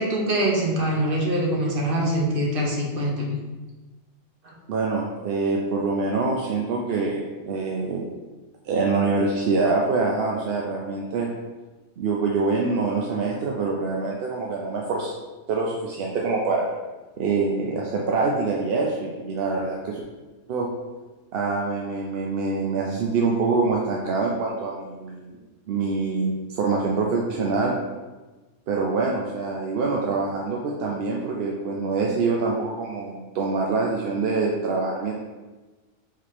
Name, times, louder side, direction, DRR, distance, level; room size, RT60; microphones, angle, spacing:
voice 1, 0.0-3.4 4.4-4.5, right 1 dB, 45° right, -2 dB, 1.0 m, -24 dB
voice 2, 4.7-8.1 8.7-11.3 12.0-15.2 15.5-16.7 17.2-20.0 20.5-20.7 21.3-25.4 25.7-27.7 28.7-35.1, right 3 dB, 60° right, -1 dB, 0.6 m, -25 dB
3.7 x 2.8 x 4.8 m, 1.2 s
omnidirectional pair, 1.4 m